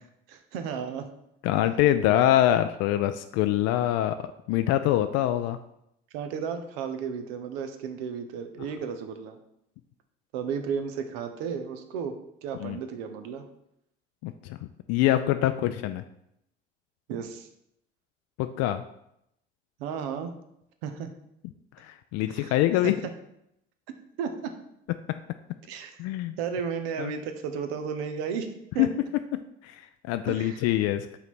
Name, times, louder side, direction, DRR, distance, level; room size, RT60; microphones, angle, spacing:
voice 1, 0.3-1.1 6.1-9.4 10.3-12.1 12.4-13.4 17.1-17.5 19.8-20.3 20.8-21.1 22.3-22.5 22.8-23.1 24.2-24.5 25.6-26.0 26.4-28.9 30.3-30.6, right 6 dB, 70° right, 7 dB, 0.9 m, -33 dB
voice 2, 1.4-4.2 4.5-5.6 12.6-12.8 14.2-14.6 14.9-16.0 18.4-18.8 21.8-22.9 26.0-26.4 27.0-27.1 28.8-28.9 29.6-29.8 30.1-31.1, left 13 dB, 55° left, 9 dB, 0.4 m, -24 dB
5.7 x 3.8 x 6.1 m, 0.78 s
figure-of-eight pair, 55°, 31 cm